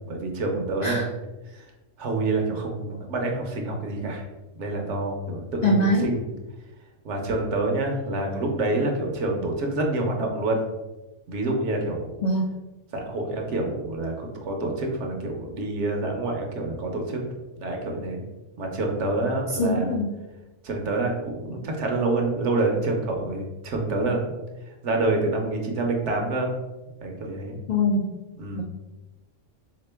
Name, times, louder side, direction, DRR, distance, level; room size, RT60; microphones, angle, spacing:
voice 1, 0.0-1.1 1.5-1.6 2.0-4.3 4.6-6.2 7.0-10.6 11.3-12.1 12.9-17.2 17.6-18.2 18.6-19.9 20.6-24.2 24.7-26.5 27.0-27.6 28.4-28.6, right 2 dB, 70° right, 2 dB, 1.0 m, -27 dB
voice 2, 5.6-6.1 12.2-12.5 19.6-20.1 27.7-28.1 28.6-28.7, left 1 dB, 70° left, -1 dB, 0.4 m, -22 dB
3.5 x 2.9 x 3.3 m, 1.1 s
omnidirectional pair, 1.3 m